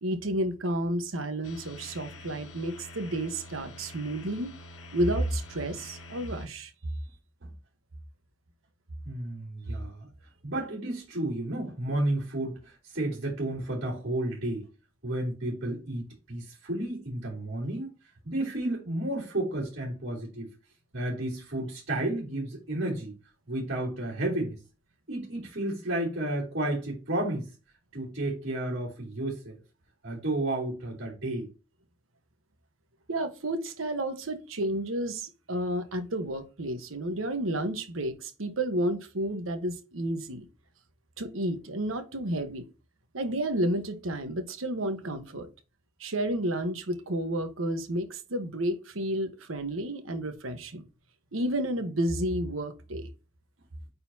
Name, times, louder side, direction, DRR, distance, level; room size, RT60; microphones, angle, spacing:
voice 1, 0.0-4.5 4.9-6.7 33.1-40.4 41.2-42.6 43.1-45.5 46.0-50.8 51.3-53.1, right 1 dB, 90° right, 1.2 m, -31 dB
sound 1, 1.4-6.5, left 1 dB, 85° left, 1.1 m, -47 dB
voice 2, 9.0-10.1 10.4-14.6 15.0-17.9 18.2-20.5 20.9-23.2 23.5-24.6 25.1-27.5 27.9-29.6 30.0-31.5, right 1 dB, 60° right, 3.3 m, -32 dB
8.9 x 4.1 x 2.8 m
head